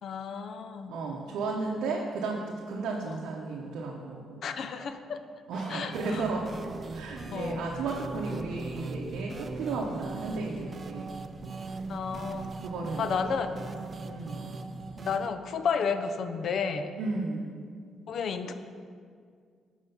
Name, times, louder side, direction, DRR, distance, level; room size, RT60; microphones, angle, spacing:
voice 1, 0.0-0.9 3.1-3.2 4.4-5.2 5.7-6.2 7.3-7.7 11.9-12.5 13.0-13.6 15.0-16.9 18.1-18.5, left 6 dB, 60° left, 9 dB, 0.5 m, -32 dB
voice 2, 0.9-4.4 5.5-6.5 6.9-11.1 12.6-13.5 14.0-14.4 17.0-17.5, right 3 dB, 80° right, -2 dB, 0.7 m, -34 dB
sound 1, 5.5-6.9, right 1 dB, 10° right, 1.6 m, -48 dB
sound 2, 5.9-15.3, right 3 dB, 35° right, 0.4 m, -40 dB
sound 3, 6.1-13.5, equal, 45° left, 1.8 m, -52 dB
7.6 x 4.6 x 5.4 m, 2.1 s
cardioid pair, 90°, 0 cm